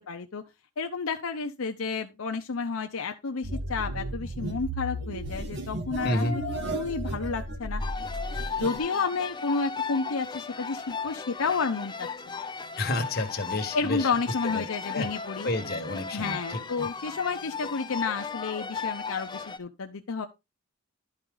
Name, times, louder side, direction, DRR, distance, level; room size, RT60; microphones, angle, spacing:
voice 1, 0.1-0.4 0.8-6.4 6.7-7.8 8.5-12.4 13.7-15.5 16.1-20.3, left 4 dB, 75° left, 0.7 m, -31 dB
sound 1, 3.4-8.8, right 1 dB, 55° right, 1.7 m, -34 dB
voice 2, 6.0-6.4 12.8-14.1 14.4-14.6 14.9-15.1 15.4-16.9, left 1 dB, 45° left, 1.5 m, -30 dB
sound 2, 7.8-19.6, left 5 dB, 20° left, 0.5 m, -36 dB
11.5 x 4.9 x 3.8 m
head